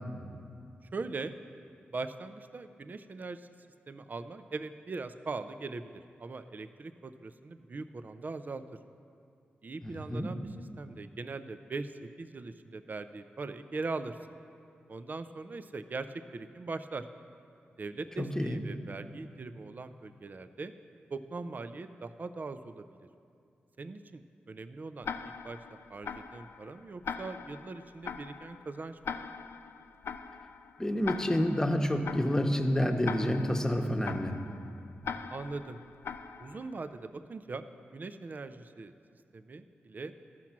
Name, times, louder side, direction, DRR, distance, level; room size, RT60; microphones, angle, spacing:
voice 1, 0.9-1.3 1.9-3.5 3.9-8.6 9.6-10.5 10.8-14.2 14.9-17.1 17.8-20.7 21.1-22.9 23.8-24.2 24.5-25.6 25.9-29.2 35.3-35.8 36.4-37.7 37.9-38.9 39.3-40.1, right 3 dB, 45° right, 10 dB, 0.5 m, -40 dB
voice 2, 9.8-10.3 18.2-18.6 30.8-34.3, equal, 15° left, 4 dB, 1.0 m, -29 dB
Tick-tock, 25.0-36.9, left 6 dB, 75° left, 0.4 m, -42 dB
13.5 x 6.0 x 5.9 m, 2.5 s
cardioid pair, 55°, 4 cm